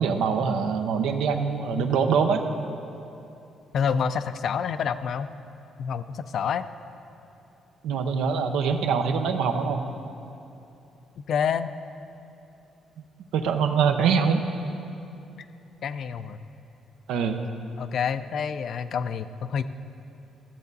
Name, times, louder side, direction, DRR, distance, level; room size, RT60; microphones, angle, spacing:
voice 1, 0.0-2.4 7.8-9.9 13.3-14.4 17.1-17.4, right 6 dB, 90° right, 6 dB, 0.7 m, -24 dB
voice 2, 3.7-5.3 5.8-6.7 11.2-11.7 15.8-16.4 17.8-19.6, left 7 dB, 65° left, 12 dB, 0.4 m, -28 dB
13.0 x 7.4 x 4.0 m, 2.8 s
cardioid pair, 90°, 0 cm